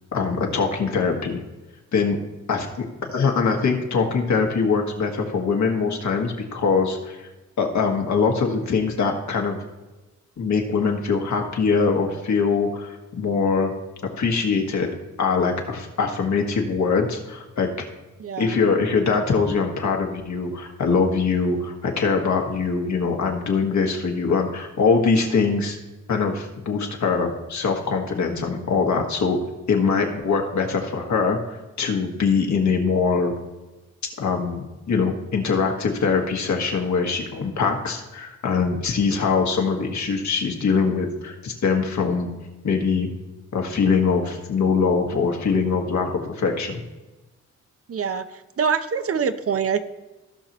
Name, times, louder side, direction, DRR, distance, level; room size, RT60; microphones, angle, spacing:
voice 1, 0.1-1.4 1.9-2.2 2.5-7.3 7.6-9.6 10.4-13.7 14.2-14.9 15.2-17.7 18.4-25.8 26.1-29.4 29.7-33.3 34.2-42.3 42.6-43.1 43.5-46.8, left 5 dB, 70° left, 2 dB, 1.6 m, -22 dB
voice 2, 18.2-18.6 47.9-49.8, right 6 dB, 50° right, 11 dB, 0.6 m, -25 dB
16.0 x 5.9 x 3.0 m, 1.1 s
cardioid pair, 80°, 29 cm